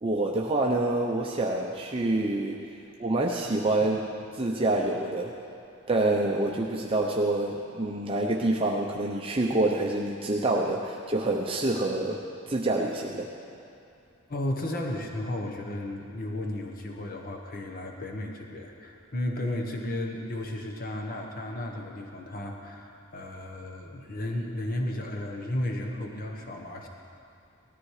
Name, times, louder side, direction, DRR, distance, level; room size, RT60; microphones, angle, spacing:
voice 1, 0.0-2.7 3.0-5.3 5.9-13.3, right 2 dB, 25° right, -2 dB, 0.8 m, -27 dB
voice 2, 14.3-26.9, left 1 dB, 45° left, 1 dB, 1.3 m, -34 dB
18.5 x 13.5 x 4.9 m, 2.5 s
head